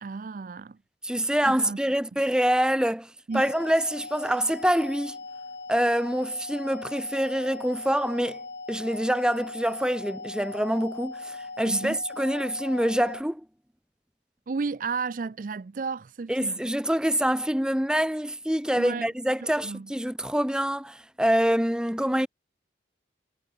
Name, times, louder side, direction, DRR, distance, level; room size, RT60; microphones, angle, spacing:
voice 1, 0.0-0.8 1.5-1.8 2.1-2.2 3.3-3.4 11.7-12.0 14.5-16.6 18.8-19.1 19.4-19.9, right 4 dB, 50° right, 0.4 m, -33 dB
voice 2, 1.0-3.1 3.3-5.2 5.7-8.4 8.7-13.4 16.3-22.3, equal, 5° right, 1.1 m, -25 dB
sound 1, 3.3-13.2, left 3 dB, 65° left, 2.8 m, -40 dB
head